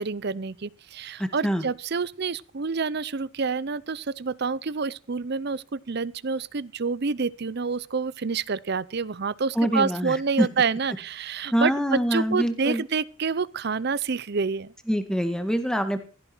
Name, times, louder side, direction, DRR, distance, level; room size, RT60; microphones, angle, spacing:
voice 1, 0.0-14.7, right 5 dB, 50° right, 0.6 m, -28 dB
voice 2, 1.2-1.6 9.6-10.5 11.5-12.8 14.9-16.0, equal, 5° left, 1.9 m, -25 dB
16.5 x 14.5 x 4.5 m
head